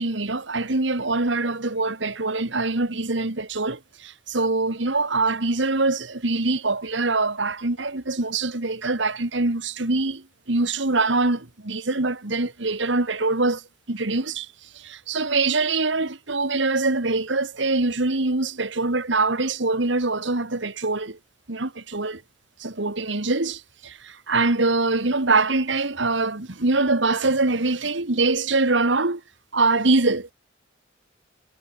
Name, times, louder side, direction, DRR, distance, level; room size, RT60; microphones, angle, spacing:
voice 1, 0.0-13.6 13.9-14.5 14.8-21.2 21.5-22.2 22.6-29.2 29.5-30.3, right 3 dB, 70° right, 1.9 m, -24 dB
head